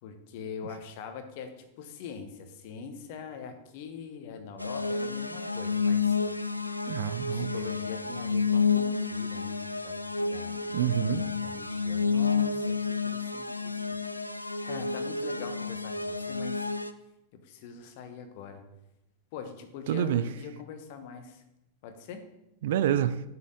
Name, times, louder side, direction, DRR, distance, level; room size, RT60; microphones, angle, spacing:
voice 1, 0.0-6.2 7.3-10.8 11.1-12.8 13.0-14.0 14.6-16.7 17.3-18.6 19.3-21.4 21.8-22.2, left 6 dB, 50° left, 1.0 m, -43 dB
sound 1, 4.6-16.9, left 5 dB, 85° left, 0.3 m, -30 dB
voice 2, 6.9-7.5 10.7-11.3 19.9-20.2 22.6-23.2, right 10 dB, 55° right, 0.4 m, -27 dB
7.3 x 6.0 x 3.8 m
figure-of-eight pair, 90°, 0 cm